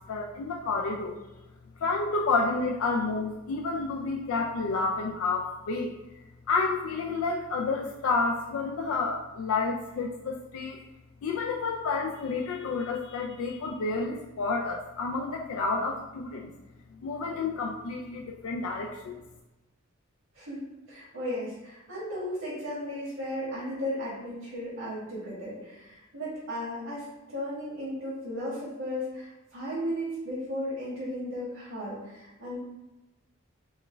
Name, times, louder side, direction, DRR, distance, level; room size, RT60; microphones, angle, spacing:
voice 1, 0.1-1.2 1.8-6.0 6.5-10.8 11.2-16.5 17.0-19.2, left 3 dB, 80° left, 1 dB, 0.3 m, -30 dB
voice 2, 20.3-32.6, equal, 85° right, -8 dB, 1.4 m, -35 dB
4.2 x 2.2 x 3.3 m, 1.1 s
head